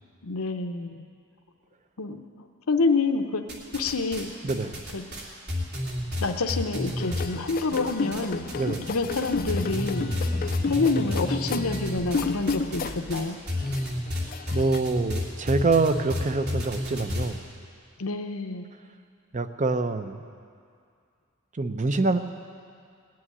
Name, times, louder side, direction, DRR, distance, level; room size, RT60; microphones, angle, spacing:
voice 1, 0.2-1.0 2.0-2.2 2.7-3.5 3.7-4.3 4.9-5.0 6.2-8.4 8.9-10.1 10.7-13.4 18.0-18.6, left 3 dB, 85° left, 6 dB, 0.8 m, -27 dB
sound 1, 3.5-4.2 4.5-8.2 8.5-9.2 9.5-17.3, left 1 dB, 50° right, 3.0 m, -30 dB
voice 2, 4.4-4.8 8.6-8.9 14.5-17.4 19.3-20.2 21.5-22.2, right 3 dB, 35° right, 9 dB, 0.7 m, -25 dB
sound 2, 7.0-13.2 13.5-14.8, left 4 dB, 45° left, 0.4 m, -32 dB
sound 3, 8.3-13.6, right 1 dB, 85° right, 5.5 m, -42 dB
18.5 x 7.8 x 9.9 m, 2.3 s
head